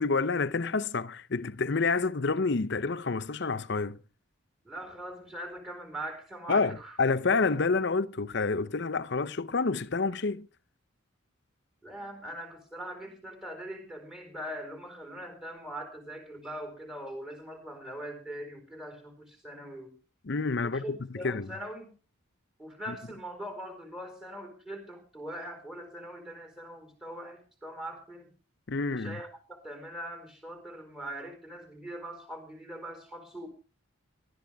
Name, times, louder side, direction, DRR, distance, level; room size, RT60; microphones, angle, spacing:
voice 1, 0.0-4.0 6.5-10.5 20.2-21.5 28.7-29.2, left 4 dB, 55° left, 0.7 m, -28 dB
voice 2, 4.6-7.0 11.8-19.9 20.6-21.9 22.6-28.3 28.8-33.5, right 1 dB, ahead, 4.5 m, -42 dB
19.0 x 13.0 x 3.5 m
head